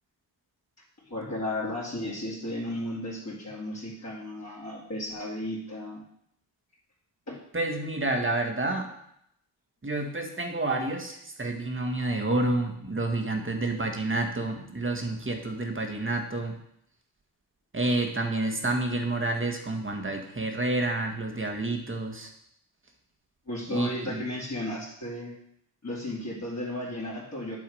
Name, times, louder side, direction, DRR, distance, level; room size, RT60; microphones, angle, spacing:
voice 1, 1.0-6.0 7.3-7.4 23.5-25.3 25.8-27.6, left 1 dB, 35° left, -8 dB, 2.4 m, -34 dB
voice 2, 7.5-8.9 9.8-16.6 17.7-22.3 23.7-24.2, right 2 dB, 25° right, 3 dB, 1.5 m, -29 dB
9.4 x 3.6 x 4.9 m, 0.74 s
supercardioid pair, 45°, 46 cm